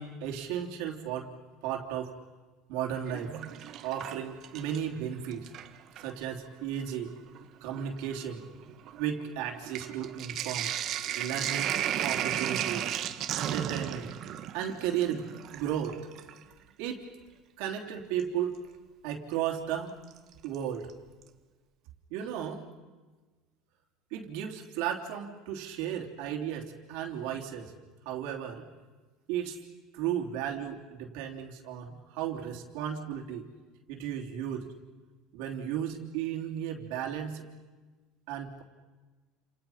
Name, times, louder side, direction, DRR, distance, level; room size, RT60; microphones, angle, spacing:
voice 1, 0.0-1.3 1.6-2.1 2.7-3.3 3.8-5.5 5.9-7.1 7.6-8.4 9.0-10.7 11.1-11.8 12.0-12.9 13.3-14.1 14.5-16.0 16.8-17.0 17.6-18.6 19.0-19.9 20.4-20.9 22.1-22.6 24.1-27.7 28.0-28.7 29.3-29.6 29.9-33.5 33.9-34.7 35.3-37.4 38.3-38.6, right 9 dB, 70° right, 1 dB, 3.2 m, -34 dB
Sink (filling or washing), 2.9-5.0 5.3-6.1 6.9-7.0 7.3-16.4 18.2-18.3 20.1-20.6 20.9-21.0 21.2-21.3, right 11 dB, 40° right, 1.5 m, -35 dB
29.5 x 28.5 x 5.8 m, 1.3 s
cardioid pair, 160°, 0 cm